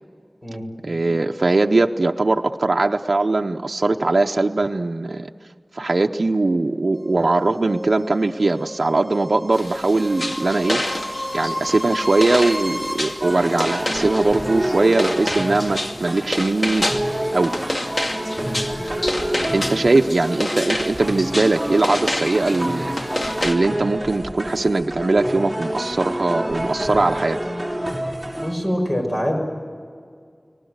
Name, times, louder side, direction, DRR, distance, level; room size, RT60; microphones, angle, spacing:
voice 1, 0.8-5.3 5.7-10.8 11.3-16.9 17.3-17.7 19.5-27.4, right 2 dB, 75° right, 3 dB, 0.7 m, -20 dB
sound 1, 6.9-12.9, equal, 80° left, 6.8 m, -32 dB
sound 2, 9.5-23.5, left 1 dB, 55° left, 2.5 m, -29 dB
sound 3, 13.2-28.5, right 1 dB, ahead, 5.7 m, -28 dB
voice 2, 28.3-29.4, equal, 30° left, 2 dB, 6.4 m, -24 dB
30.0 x 19.5 x 8.0 m, 2.1 s
wide cardioid pair, 50°, 0 cm